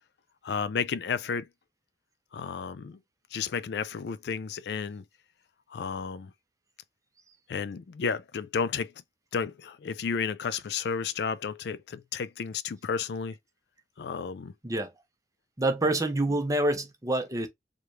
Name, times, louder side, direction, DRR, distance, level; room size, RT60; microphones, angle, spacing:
voice 1, 0.4-1.5 2.3-3.0 3.3-5.0 5.7-6.3 7.5-8.9 9.3-13.4 14.0-14.5 15.8-15.9 16.3-16.4, left 6 dB, 65° left, 0.4 m, -32 dB
voice 2, 15.6-17.5, right 1 dB, 20° right, 0.7 m, -27 dB
4.8 x 2.3 x 3.1 m
head